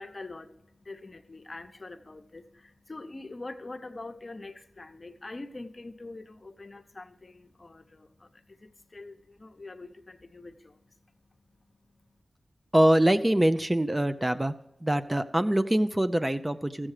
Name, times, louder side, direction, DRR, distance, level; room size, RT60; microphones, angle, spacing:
voice 1, 0.0-12.2, left 2 dB, 45° left, 0.8 m, -45 dB
voice 2, 12.7-14.5 14.8-16.9, right 1 dB, 20° right, 0.5 m, -24 dB
14.0 x 7.4 x 4.9 m
cardioid pair, 50°, 0 cm